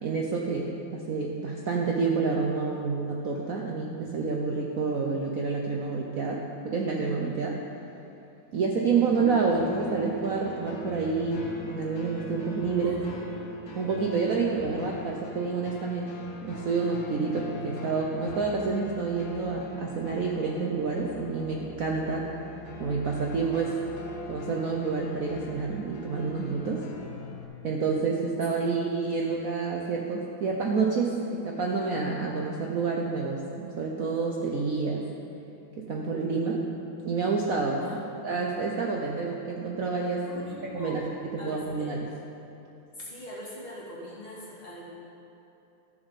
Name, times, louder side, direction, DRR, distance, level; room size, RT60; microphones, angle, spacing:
voice 1, 0.0-7.6 8.5-13.0 13.7-22.3 22.8-23.8 24.3-26.8 27.6-35.0 35.8-36.6 37.0-41.0 41.3-42.0, right 4 dB, 90° right, -1 dB, 0.7 m, -28 dB
voice 2, 8.8-9.1 12.8-13.3 29.1-29.2 37.8-38.0 40.2-41.1 41.4-42.0 43.0-44.8, equal, 25° left, -7 dB, 2.3 m, -42 dB
sound 1, 9.0-27.4, left 2 dB, 55° left, 1.2 m, -42 dB
13.0 x 7.0 x 4.1 m, 2.9 s
omnidirectional pair, 2.4 m